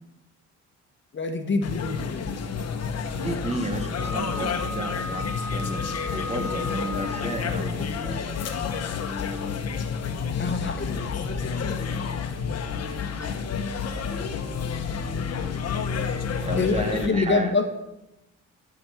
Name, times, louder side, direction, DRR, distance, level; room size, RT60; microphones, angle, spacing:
voice 1, 1.1-2.3 10.4-11.7 16.6-17.7, left 4 dB, 40° left, 7 dB, 1.4 m, -26 dB
sound 1, 1.6-17.1, left 6 dB, 55° left, 1.3 m, -30 dB
voice 2, 3.1-5.8 6.1-8.2 16.4-17.5, right 2 dB, 20° right, 6 dB, 1.4 m, -32 dB
Wind instrument woodwind instrument, 3.9-7.5, left 2 dB, 5° left, 0.5 m, -35 dB
12.5 x 6.3 x 7.3 m, 0.95 s
cardioid pair, 90°, 30 cm